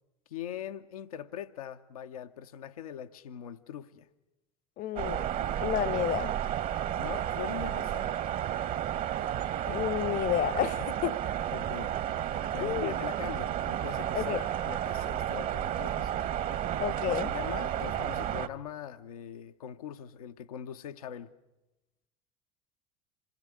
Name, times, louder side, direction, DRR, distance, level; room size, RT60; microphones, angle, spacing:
voice 1, 0.3-4.1 7.0-8.1 11.5-11.9 12.5-16.2 17.1-21.3, left 9 dB, 80° left, 0.9 m, -41 dB
voice 2, 4.8-5.3 5.6-6.3 9.7-11.2 12.6-12.9 14.1-14.4 16.8-17.3, left 12 dB, 50° left, 1.0 m, -30 dB
sound 1, 5.0-18.5, right 11 dB, 50° right, 1.3 m, -32 dB
27.0 x 20.0 x 9.8 m
hypercardioid pair, 70°, 18 cm